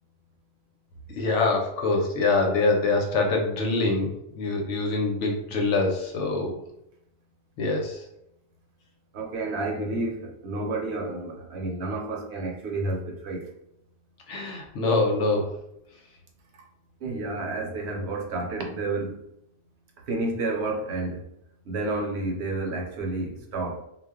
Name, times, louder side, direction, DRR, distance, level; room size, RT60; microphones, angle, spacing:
voice 1, 1.2-6.5 7.6-8.0 14.3-15.5, left 3 dB, 85° left, 1 dB, 1.0 m, -24 dB
voice 2, 9.1-13.5 17.0-19.2 20.1-21.3 21.7-23.8, right 2 dB, 70° right, 1 dB, 0.9 m, -30 dB
2.3 x 2.1 x 3.5 m, 0.78 s
omnidirectional pair, 1.2 m